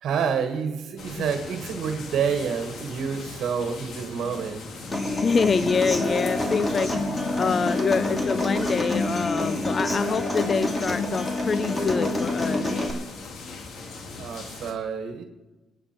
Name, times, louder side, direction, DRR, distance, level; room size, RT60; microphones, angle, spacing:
voice 1, 0.0-4.6 14.2-15.2, right 6 dB, 70° right, 6 dB, 1.4 m, -28 dB
sound 1, 1.0-14.7, left 3 dB, 70° left, 2.2 m, -40 dB
Human voice / Acoustic guitar, 4.9-12.9, left 2 dB, 25° left, 2.5 m, -27 dB
voice 2, 5.2-12.7, left 5 dB, 45° left, 15 dB, 0.5 m, -26 dB
22.0 x 9.0 x 4.4 m, 1.2 s
cardioid pair, 90°, 0 cm